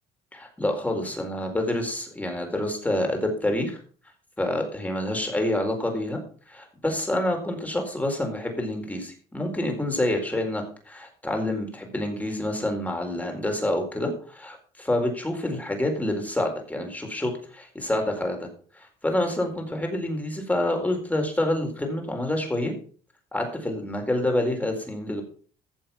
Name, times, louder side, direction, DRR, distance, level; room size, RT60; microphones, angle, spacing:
voice 1, 0.3-3.8 4.4-6.2 6.5-18.5 18.7-22.7 23.3-25.2, left 1 dB, 10° left, 3 dB, 4.2 m, -27 dB
15.0 x 7.1 x 5.8 m, 0.43 s
cardioid pair, 110°, 17 cm